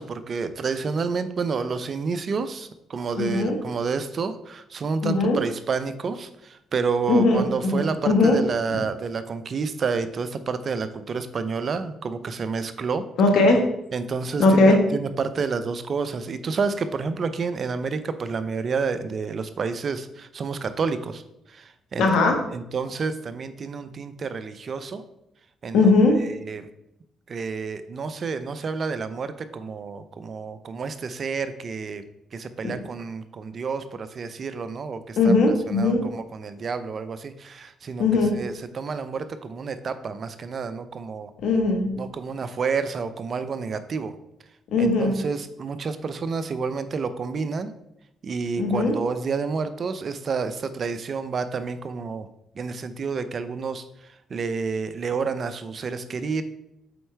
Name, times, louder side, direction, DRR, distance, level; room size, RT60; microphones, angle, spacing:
voice 1, 0.0-13.1 13.9-21.2 21.5-22.1 22.5-25.0 25.6-25.9 26.3-26.7 27.3-32.0 32.3-35.3 35.7-41.3 42.0-44.1 44.8-47.7 48.2-52.3 52.5-56.4, right 5 dB, 50° right, 12 dB, 0.6 m, -29 dB
voice 2, 3.2-3.6 5.0-5.4 7.1-8.4 8.7-8.8 13.2-13.6 14.4-14.8 22.0-22.3 25.7-26.2 32.6-32.7 35.2-36.0 38.0-38.4 41.4-42.0 44.7-45.1 48.6-49.0, left 3 dB, 75° left, 3 dB, 1.3 m, -19 dB
7.7 x 4.4 x 3.3 m, 0.82 s
supercardioid pair, 65°, 0 cm